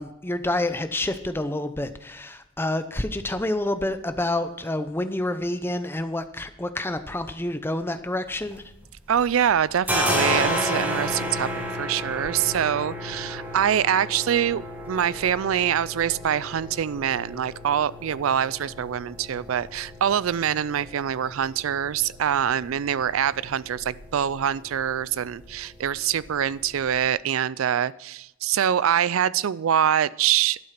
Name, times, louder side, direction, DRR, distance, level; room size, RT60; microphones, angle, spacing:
voice 1, 0.0-8.6, left 1 dB, 10° left, 10 dB, 0.6 m, -28 dB
sound 1, 8.3-9.2 9.5-27.0, left 1 dB, 10° right, 1.8 m, -33 dB
voice 2, 9.1-11.5 11.8-30.6, right 9 dB, 75° right, 20 dB, 0.4 m, -24 dB
12.0 x 8.5 x 5.9 m, 0.88 s
head